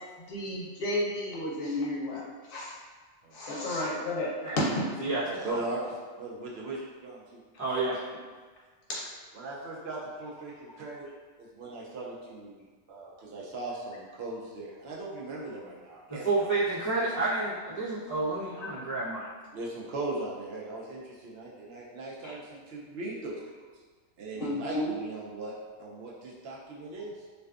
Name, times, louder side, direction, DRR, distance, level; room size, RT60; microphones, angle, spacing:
voice 1, 0.2-2.2 2.5-2.7 3.3-4.6 7.5-7.6 18.6-18.7 22.2-22.3 24.4-24.9, left 1 dB, 60° left, -5 dB, 0.8 m, -32 dB
voice 2, 3.2-4.0 5.2-5.8 6.2-7.4 7.9-8.0 9.3-11.1 11.4-12.6 12.9-16.5 19.5-23.4 24.2-25.5 25.8-27.1, right 2 dB, 65° right, -4 dB, 0.8 m, -39 dB
voice 3, 5.0-5.6 7.6-8.0 16.1-19.3, right 3 dB, 25° left, -13 dB, 0.4 m, -30 dB
2.5 x 2.2 x 2.3 m, 1.5 s
omnidirectional pair, 1.2 m